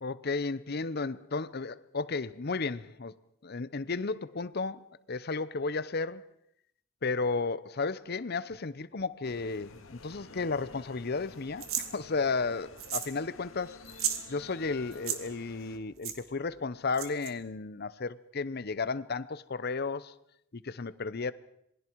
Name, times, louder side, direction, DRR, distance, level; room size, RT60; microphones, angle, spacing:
voice 1, 0.0-3.1 3.4-6.2 7.0-13.8 14.3-20.1 20.5-21.3, left 4 dB, 50° left, 0.7 m, -33 dB
sound 1, 9.2-15.8, left 3 dB, 75° left, 2.2 m, -51 dB
sound 2, 11.6-11.9 12.8-13.2 13.4-13.5 13.8-14.2 14.9-15.2 16.0-16.2 16.9-17.3, right 9 dB, 90° right, 2.0 m, -33 dB
27.5 x 21.0 x 4.7 m
head